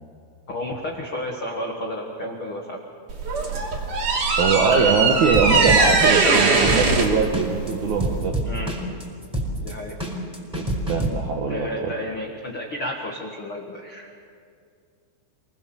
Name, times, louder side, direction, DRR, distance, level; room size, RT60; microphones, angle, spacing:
voice 1, 0.5-2.8 8.4-8.8 9.6-9.9 11.5-14.2, left 1 dB, 80° left, 1 dB, 1.1 m, -32 dB
sound 1, 3.1-8.3, right 4 dB, 45° right, 4.0 m, -20 dB
voice 2, 4.4-8.4 10.5-11.9, right 5 dB, 70° right, 2 dB, 1.8 m, -22 dB
sound 2, 5.3-11.1, right 1 dB, ahead, 4.1 m, -27 dB
28.5 x 19.5 x 7.2 m, 2.3 s
omnidirectional pair, 5.4 m